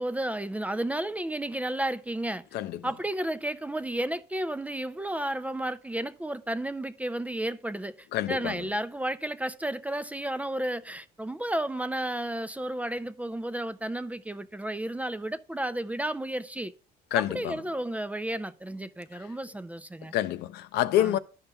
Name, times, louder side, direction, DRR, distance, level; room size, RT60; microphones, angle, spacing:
voice 1, 0.0-2.4 2.8-16.7 17.1-20.1 20.9-21.2, right 1 dB, 10° right, 0.3 m, -32 dB
voice 2, 8.1-8.6 17.1-17.6 20.1-21.2, left 12 dB, 75° left, 0.5 m, -27 dB
12.0 x 5.5 x 2.3 m
cardioid pair, 110°, 17 cm